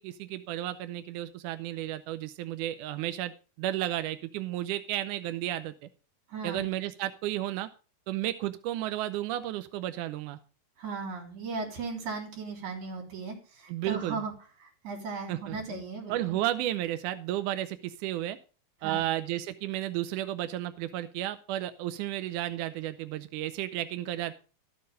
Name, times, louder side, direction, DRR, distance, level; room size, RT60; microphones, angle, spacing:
voice 1, 0.0-5.7 6.4-7.7 8.1-10.4 13.7-14.2 15.3-15.6 16.1-18.4 18.8-24.3, right 14 dB, 80° right, 11 dB, 1.9 m, -33 dB
voice 2, 6.3-6.7 10.8-14.3 14.6-16.4 18.8-19.1, right 4 dB, 55° right, 2 dB, 4.6 m, -37 dB
13.0 x 6.8 x 5.2 m, 0.36 s
omnidirectional pair, 4.2 m